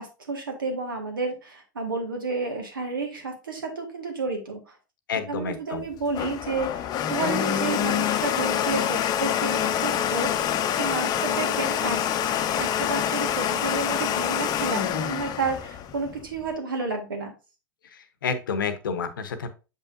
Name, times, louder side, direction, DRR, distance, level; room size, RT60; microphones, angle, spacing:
voice 1, 0.0-4.7 5.3-10.3 10.7-12.0 12.5-17.3, right 4 dB, 85° right, 3 dB, 1.7 m, -31 dB
voice 2, 5.1-5.8 18.2-19.5, left 5 dB, 80° left, 11 dB, 0.9 m, -29 dB
Domestic sounds home sounds, 5.8-16.5, left 9 dB, 35° left, 0.7 m, -26 dB
6.6 x 5.6 x 2.6 m, 0.31 s
hypercardioid pair, 90°, 11 cm